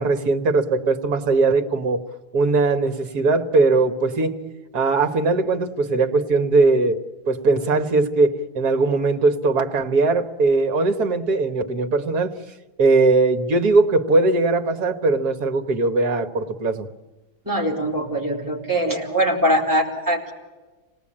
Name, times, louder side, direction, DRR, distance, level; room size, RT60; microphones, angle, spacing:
voice 1, 0.0-2.0 2.3-4.3 4.7-12.4 12.8-16.9, right 3 dB, 70° right, 6 dB, 2.0 m, -20 dB
voice 2, 17.5-20.3, equal, 10° right, -1 dB, 4.2 m, -22 dB
27.5 x 18.5 x 8.8 m, 1.2 s
omnidirectional pair, 1.7 m